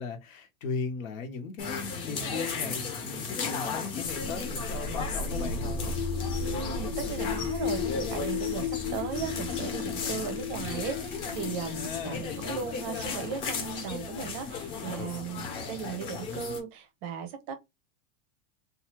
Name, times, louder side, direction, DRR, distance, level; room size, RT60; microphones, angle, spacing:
voice 1, 0.0-5.9 11.7-12.4 15.0-15.2, left 4 dB, 85° left, 1.1 m, -37 dB
sound 1, 1.6-16.6, left 5 dB, 35° left, 0.9 m, -36 dB
sound 2, 4.0-15.8, left 5 dB, 65° left, 0.8 m, -35 dB
voice 2, 6.5-17.5, right 6 dB, 30° right, 0.5 m, -37 dB
2.7 x 2.3 x 3.0 m
supercardioid pair, 170°, 40 cm